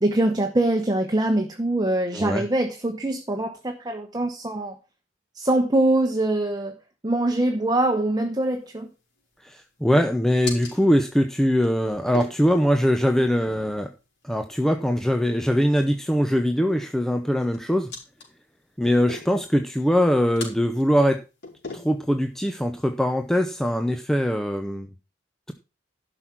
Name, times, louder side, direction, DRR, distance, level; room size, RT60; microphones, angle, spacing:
voice 1, 0.0-4.8 5.3-6.8 7.0-8.9, right 1 dB, 20° right, 5 dB, 1.1 m, -23 dB
voice 2, 2.1-2.4 9.4-13.9 14.2-17.9 18.8-21.2 21.7-24.9, equal, ahead, 6 dB, 0.8 m, -22 dB
sound 1, 8.5-23.8, left 3 dB, 60° left, 4.8 m, -44 dB
12.0 x 6.2 x 5.8 m, 0.30 s
head